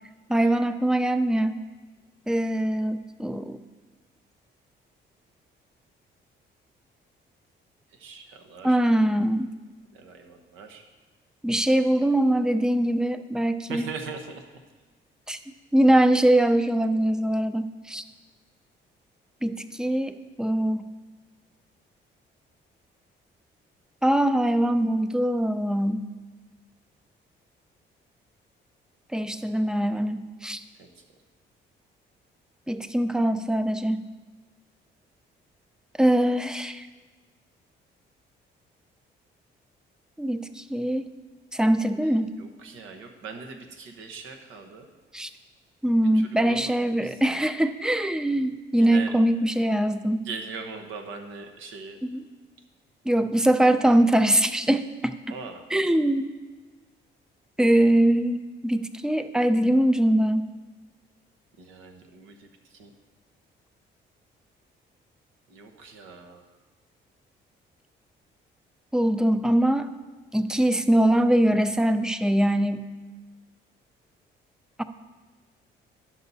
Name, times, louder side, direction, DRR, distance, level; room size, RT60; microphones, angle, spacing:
voice 1, 0.3-1.6 2.3-3.6 8.6-9.5 11.4-13.9 15.3-18.0 19.4-20.9 24.0-26.1 29.1-30.6 32.7-34.0 36.0-36.9 40.2-41.1 41.5-42.4 45.1-45.3 45.8-50.3 52.0-52.2 53.1-55.2 55.7-56.2 57.6-60.5 68.9-69.9 70.3-72.9 74.8-74.9, right 1 dB, 5° right, 10 dB, 0.4 m, -22 dB
voice 2, 8.0-8.8 9.9-10.8 13.7-14.4 30.8-30.9 42.0-42.1 42.4-44.9 46.4-47.4 48.8-49.1 50.2-52.0 55.3-55.6 61.6-62.5 62.7-62.9 65.5-66.4, right 4 dB, 85° right, 4 dB, 1.0 m, -40 dB
11.0 x 5.8 x 4.1 m, 1.3 s
cardioid pair, 90°, 20 cm